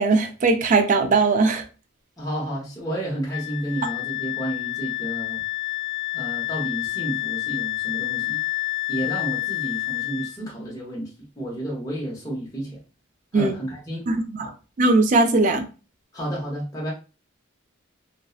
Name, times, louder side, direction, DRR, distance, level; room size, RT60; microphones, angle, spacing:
voice 1, 0.0-1.6 13.3-13.5 14.1-14.5 14.8-15.6, right 3 dB, 40° right, 0.3 m, -19 dB
voice 2, 2.2-5.4 6.1-8.4 8.9-11.1 11.4-12.8 13.3-14.1 14.4-14.5 16.1-16.9, right 1 dB, 15° left, 0.7 m, -31 dB
Wind instrument woodwind instrument, 3.3-10.4, left 20 dB, 80° left, 0.3 m, -29 dB
2.7 x 2.0 x 2.3 m
head